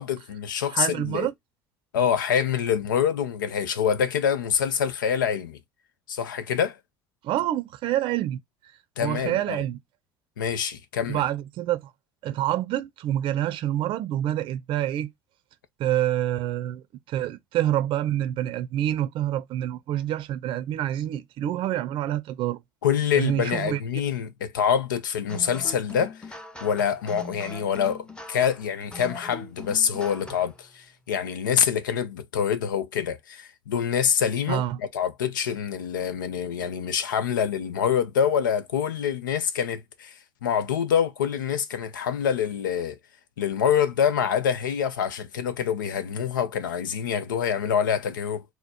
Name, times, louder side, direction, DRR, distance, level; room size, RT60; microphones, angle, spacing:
voice 1, 0.0-1.3 1.9-5.6 6.1-6.8 9.0-9.6 10.4-11.2 22.8-26.4 26.6-43.0 43.4-48.4, left 8 dB, 85° left, 0.6 m, -26 dB
voice 2, 0.7-1.3 7.2-8.7 9.0-9.8 11.1-11.9 12.2-15.1 15.8-22.6 23.1-23.8 34.5-34.8, right 12 dB, 55° right, 0.5 m, -27 dB
sound 1, 25.3-30.6, left 2 dB, 10° left, 0.9 m, -41 dB
4.1 x 2.0 x 4.2 m
hypercardioid pair, 65°, 10 cm